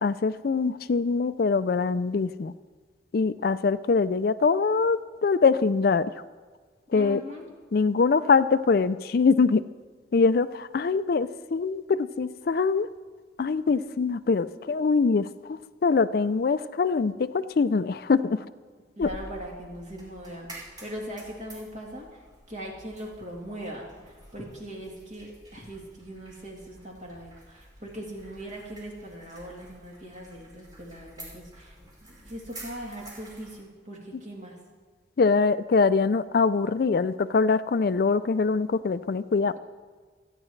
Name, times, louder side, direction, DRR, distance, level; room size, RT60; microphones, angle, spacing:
voice 1, 0.0-2.5 3.1-6.1 6.9-7.2 7.7-9.6 10.1-12.9 13.4-18.4 19.0-19.1 35.2-39.6, left 4 dB, 55° left, 14 dB, 0.4 m, -23 dB
voice 2, 6.9-7.4 19.0-22.2 22.5-34.6, equal, 45° right, -2 dB, 3.0 m, -40 dB
sound 1, 19.0-33.6, right 1 dB, 25° right, 4.7 m, -49 dB
27.0 x 9.9 x 3.2 m, 1.5 s
head